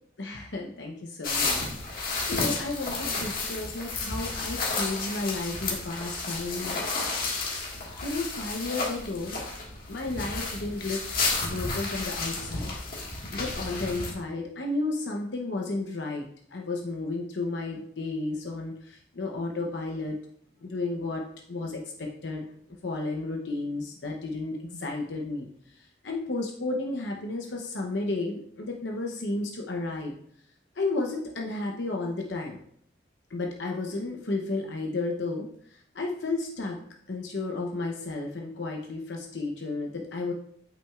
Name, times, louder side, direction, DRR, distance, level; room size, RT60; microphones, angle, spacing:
voice 1, 0.2-7.0 8.0-9.5 9.9-11.0 11.4-12.7 13.3-20.2 20.6-21.2 21.5-22.5 22.8-25.5 25.7-30.1 30.8-32.6 33.3-36.8 37.1-40.3, left 2 dB, 80° left, 0 dB, 0.8 m, -33 dB
sound 1, 1.2-14.1, left 3 dB, 50° left, 1.7 m, -32 dB
8.4 x 6.0 x 2.4 m, 0.66 s
head